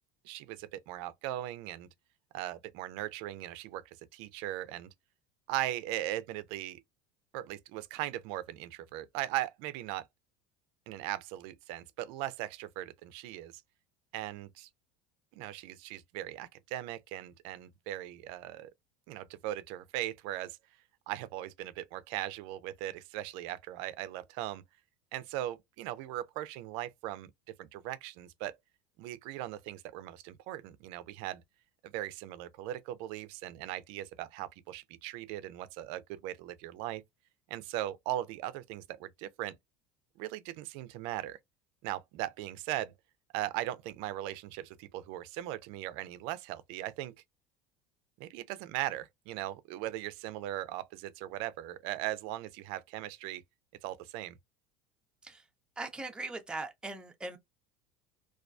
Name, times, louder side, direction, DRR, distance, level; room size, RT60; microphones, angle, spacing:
voice 1, 0.2-1.9 2.3-4.9 5.5-6.8 7.3-10.1 10.9-13.6 14.1-14.7 15.3-18.7 19.1-20.6 21.1-24.6 25.1-27.3 27.6-28.6 29.0-31.4 31.8-37.0 37.5-39.6 40.2-41.4 41.8-42.9 43.3-47.1 48.2-53.4 53.8-54.4, right 14 dB, 70° right, 0.4 m, -39 dB
voice 2, 55.8-57.4, right 2 dB, 10° right, 0.6 m, -40 dB
2.3 x 2.2 x 2.4 m
supercardioid pair, 115°, 9 cm